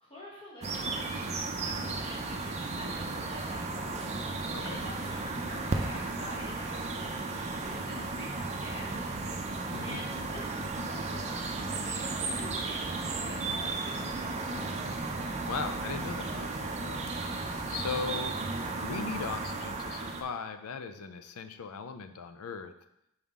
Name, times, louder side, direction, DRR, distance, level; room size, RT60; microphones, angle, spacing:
voice 1, 0.0-9.3 9.8-14.8, left 1 dB, 25° left, -5 dB, 0.9 m, -47 dB
sound 1, 0.6-20.2, right 3 dB, 30° right, 0.5 m, -34 dB
voice 2, 4.5-4.8 9.7-10.1 15.2-17.1 17.7-18.4 18.8-22.7, left 5 dB, 80° left, 9 dB, 0.5 m, -38 dB
5.5 x 4.8 x 3.6 m, 0.82 s
head